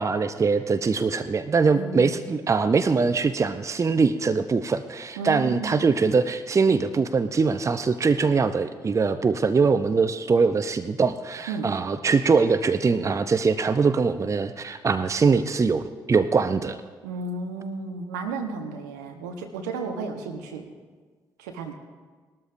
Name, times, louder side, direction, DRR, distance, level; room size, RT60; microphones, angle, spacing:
voice 1, 0.0-16.8, right 4 dB, 35° right, 11 dB, 0.6 m, -22 dB
voice 2, 1.7-2.2 5.2-5.8 11.5-11.7 17.0-20.7 21.4-21.7, right 4 dB, 80° right, 4 dB, 1.1 m, -33 dB
20.0 x 13.0 x 2.6 m, 1.4 s
hypercardioid pair, 40°, 9 cm